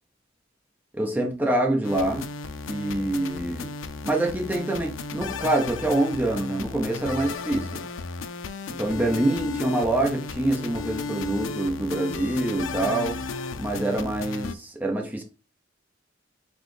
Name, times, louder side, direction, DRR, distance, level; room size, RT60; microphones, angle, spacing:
voice 1, 0.9-2.3 2.7-3.7 4.0-7.9 8.7-13.2 13.6-15.2, right 1 dB, 10° right, 1 dB, 0.8 m, -26 dB
sound 1, 1.8-14.5, left 4 dB, 85° left, 0.5 m, -34 dB
4.2 x 3.9 x 3.2 m, 0.32 s
head